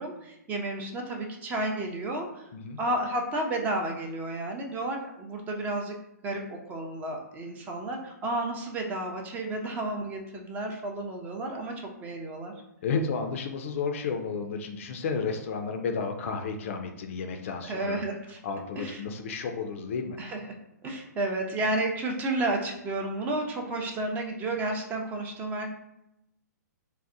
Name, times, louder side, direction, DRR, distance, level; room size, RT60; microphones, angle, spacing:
voice 1, 0.0-2.5 2.8-6.0 6.2-12.5 17.6-18.4 18.8-19.0 20.2-20.4 20.8-25.7, right 2 dB, 15° right, 2 dB, 0.5 m, -32 dB
voice 2, 12.8-18.0 18.4-20.2, left 5 dB, 45° left, 5 dB, 0.4 m, -32 dB
4.0 x 2.1 x 2.5 m, 0.82 s
figure-of-eight pair, 120°, 10 cm